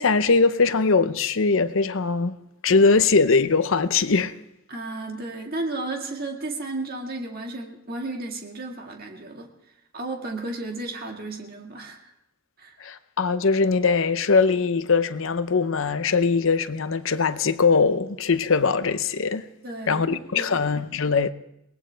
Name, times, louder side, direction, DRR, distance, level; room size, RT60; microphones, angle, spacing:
voice 1, 0.0-2.3 2.6-4.3 12.8-19.4 19.9-21.3, left 4 dB, 65° left, 0.7 m, -21 dB
voice 2, 4.7-9.5 9.9-12.1 12.6-12.8 19.6-20.6, right 2 dB, 45° right, 1.8 m, -33 dB
22.5 x 18.5 x 3.4 m
head